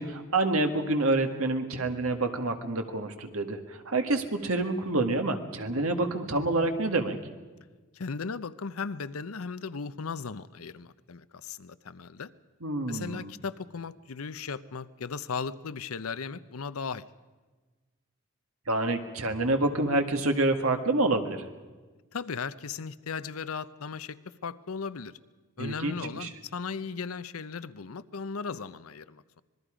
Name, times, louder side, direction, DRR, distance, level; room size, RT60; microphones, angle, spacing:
voice 1, 0.0-7.2 12.6-13.3 18.7-21.5 25.6-26.3, right 2 dB, 80° right, 6 dB, 1.8 m, -27 dB
voice 2, 7.9-12.3 12.9-17.1 22.1-25.1 25.6-29.4, left 5 dB, 85° left, 15 dB, 0.7 m, -37 dB
26.0 x 21.0 x 5.1 m, 1.3 s
head